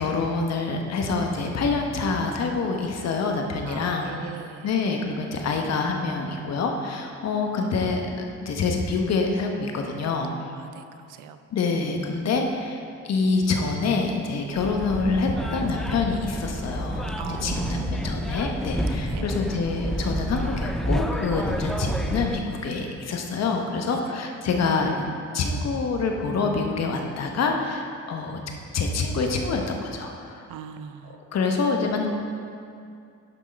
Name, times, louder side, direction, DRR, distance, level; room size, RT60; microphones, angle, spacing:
voice 1, 0.0-4.1 4.6-10.3 11.5-12.8 13.1-28.4 28.7-30.4 31.3-32.1, left 4 dB, 60° left, 2 dB, 1.0 m, -26 dB
voice 2, 3.6-4.7 10.5-11.4 17.2-18.0 18.9-19.3 23.9-24.1 30.5-31.2 31.5-31.6, right 9 dB, 90° right, 9 dB, 0.5 m, -40 dB
sound 1, 14.5-22.4, equal, ahead, 0.4 m, -29 dB
11.0 x 3.6 x 5.2 m, 2.4 s
cardioid pair, 90°, 30 cm